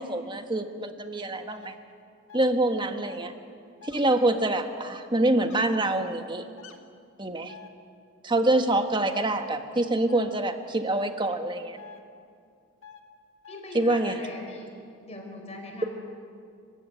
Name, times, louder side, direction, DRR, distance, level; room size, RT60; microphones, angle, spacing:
voice 1, 0.0-1.7 2.3-3.3 3.8-6.4 7.2-7.5 8.2-11.8 13.7-14.2, right 2 dB, 25° right, 7 dB, 1.4 m, -26 dB
sound 1, 1.5-1.7 2.3-2.5 3.1-3.3 3.8-4.0 5.4-5.6 6.6-6.8 7.5-7.7 9.1-9.3 10.1-10.3 10.9-11.1 11.8-12.0 12.8-13.0 13.4-13.6, left 8 dB, 80° left, 1.9 m, -47 dB
voice 2, 13.5-14.7 15.0-15.9, left 1 dB, 30° left, 2 dB, 4.9 m, -40 dB
30.0 x 15.5 x 9.4 m, 2.3 s
head